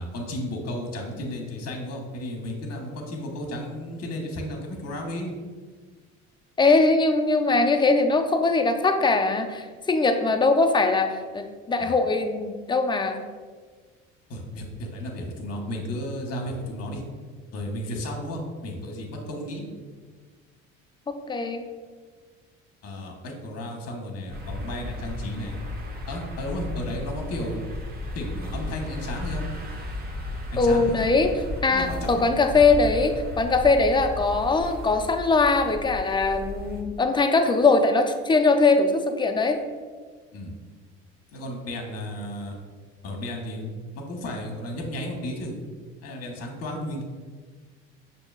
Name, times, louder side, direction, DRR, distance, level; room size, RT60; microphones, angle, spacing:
voice 1, 0.0-5.3 11.8-11.9 14.3-17.0 17.5-19.6 22.8-25.6 26.1-27.6 28.1-29.5 30.5-31.0 31.7-32.2 40.3-40.5 41.3-42.5 43.0-43.7 44.1-45.5 46.0-47.0, left 1 dB, 45° left, 1 dB, 1.0 m, -33 dB
voice 2, 6.6-13.2 21.1-21.6 30.6-31.3 31.6-39.6, left 3 dB, 15° left, 5 dB, 0.4 m, -21 dB
sound 1, 24.3-36.8, left 1 dB, 25° right, 0.8 m, -35 dB
6.1 x 2.7 x 2.4 m, 1.5 s
hypercardioid pair, 65°, 35 cm